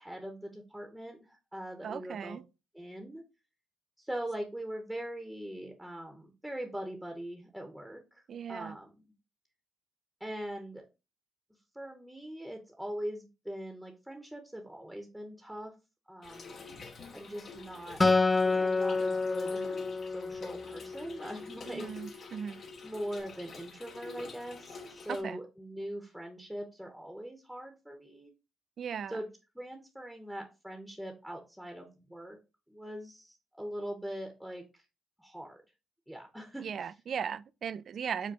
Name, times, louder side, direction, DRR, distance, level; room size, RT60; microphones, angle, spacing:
voice 1, 0.0-2.4 2.7-3.2 4.0-8.2 8.5-8.9 10.2-10.9 11.7-15.7 16.1-16.7 17.1-18.0 18.4-22.3 22.8-28.3 29.1-29.3 29.5-32.4 32.7-34.8 35.2-35.6 36.1-36.7, right 1 dB, 5° right, 0.9 m, -42 dB
voice 2, 1.8-2.4 8.3-8.8 21.7-22.6 25.1-25.4 28.8-29.2 36.6-38.3, right 7 dB, 55° right, 0.3 m, -37 dB
Trickle dribble / Fill (with liquid), 16.2-25.2, left 4 dB, 50° left, 1.0 m, -48 dB
Acoustic guitar, 18.0-21.4, left 3 dB, 20° left, 0.4 m, -28 dB
5.0 x 2.2 x 4.7 m
cardioid pair, 90°, 0 cm